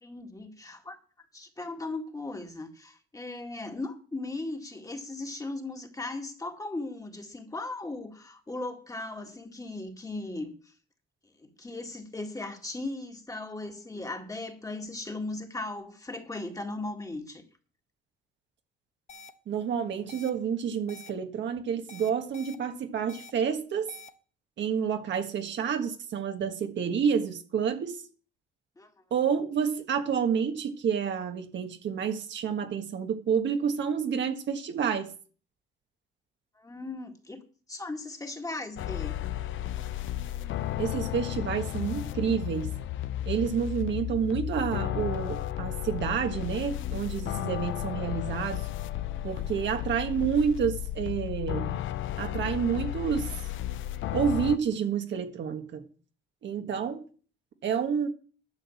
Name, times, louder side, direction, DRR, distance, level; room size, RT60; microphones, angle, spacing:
voice 1, 0.0-10.7 11.4-17.4 28.8-28.9 29.2-29.3 36.6-37.4 37.7-39.2, left 2 dB, 15° left, 2.0 m, -37 dB
sound 1, 19.1-19.3 20.1-20.3 20.9-21.1 21.9-22.6 23.1-23.3 23.9-24.1, left 4 dB, 35° left, 1.2 m, -47 dB
voice 2, 19.5-23.9 24.6-28.0 29.1-35.1 40.8-42.7 43.2-48.7 49.2-51.8 52.2-53.3 54.1-55.8 56.4-57.0 57.6-58.1, right 7 dB, 65° right, 1.5 m, -29 dB
sound 2, 38.8-54.6, left 13 dB, 75° left, 0.6 m, -33 dB
11.5 x 6.0 x 7.2 m
cardioid pair, 90°, 20 cm